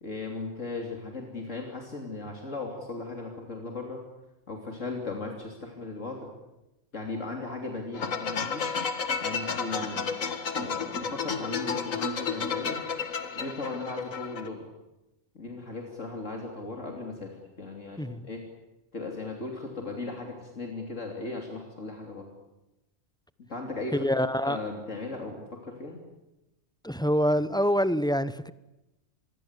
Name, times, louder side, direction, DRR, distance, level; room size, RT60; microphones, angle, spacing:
voice 1, 0.0-4.0 4.5-6.3 6.9-8.6 8.9-10.1 10.5-12.8 13.3-14.7 15.4-18.4 18.9-22.3 23.5-26.0, left 3 dB, 70° left, 2 dB, 3.5 m, -37 dB
sound 1, 7.9-14.5, left 5 dB, 90° left, 2.1 m, -32 dB
voice 2, 18.0-18.3 23.9-24.6 26.8-28.5, equal, 5° left, 14 dB, 0.6 m, -26 dB
26.5 x 22.0 x 8.3 m, 0.97 s
omnidirectional pair, 1.3 m